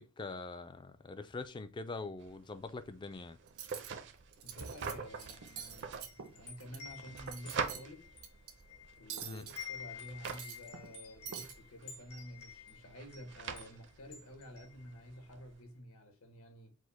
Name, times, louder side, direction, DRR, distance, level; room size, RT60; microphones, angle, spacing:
voice 1, 0.0-3.4 9.2-9.5, left 3 dB, 20° left, 0.3 m, -43 dB
sound 1, 2.2-15.6, right 5 dB, 55° right, 0.5 m, -46 dB
Cutlery silverware, 3.5-3.9 4.3-4.9 5.2-6.8 7.1-7.9 8.2-8.5 9.1-9.7 10.1-11.0 11.3-11.5, right 8 dB, 85° right, 0.8 m, -46 dB
voice 2, 4.4-8.0 9.0-16.7, equal, 70° left, 1.0 m, -51 dB
Wind chime, 5.1-9.1 9.4-15.3, left 7 dB, 90° left, 1.4 m, -51 dB
4.9 x 2.1 x 4.0 m
head